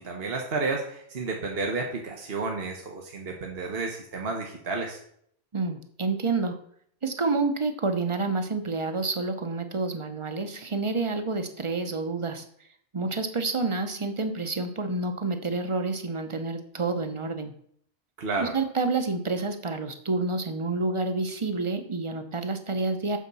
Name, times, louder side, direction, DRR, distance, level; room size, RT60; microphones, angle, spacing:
voice 1, 0.0-5.0 18.2-18.5, right 3 dB, 70° right, 1 dB, 1.4 m, -31 dB
voice 2, 5.5-6.6 7.0-12.4 12.9-17.5 18.4-23.2, right 3 dB, 30° right, 8 dB, 0.9 m, -28 dB
7.5 x 5.1 x 6.9 m, 0.65 s
omnidirectional pair, 1.1 m